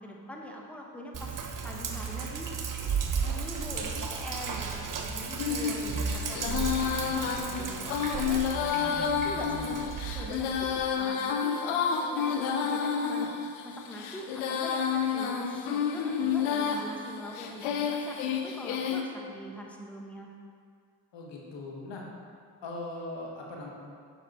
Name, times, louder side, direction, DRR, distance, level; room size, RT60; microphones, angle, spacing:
voice 1, 0.0-2.5 3.2-8.5 8.8-9.8 10.1-13.3 13.6-20.3, equal, 5° left, -1 dB, 1.2 m, -43 dB
Sink (filling or washing), 1.1-10.8, right 5 dB, 45° right, 1.0 m, -34 dB
Female singing, 5.4-19.0, left 7 dB, 85° left, 0.7 m, -30 dB
voice 2, 8.5-9.8 21.1-22.0 22.6-23.7, left 2 dB, 65° left, -1 dB, 1.4 m, -41 dB
7.1 x 5.5 x 4.2 m, 2.2 s
supercardioid pair, 50°, 46 cm